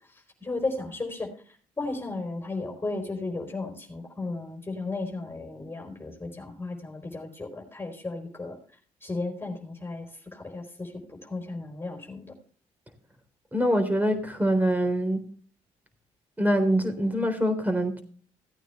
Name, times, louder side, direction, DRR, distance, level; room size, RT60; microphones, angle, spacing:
voice 1, 0.4-1.3 1.8-8.6 9.0-10.1 10.3-12.3, left 3 dB, 15° left, 4.5 m, -34 dB
voice 2, 13.5-15.2 16.4-18.0, equal, 10° right, 3.8 m, -24 dB
17.0 x 9.1 x 3.3 m
supercardioid pair, 65°, 13 cm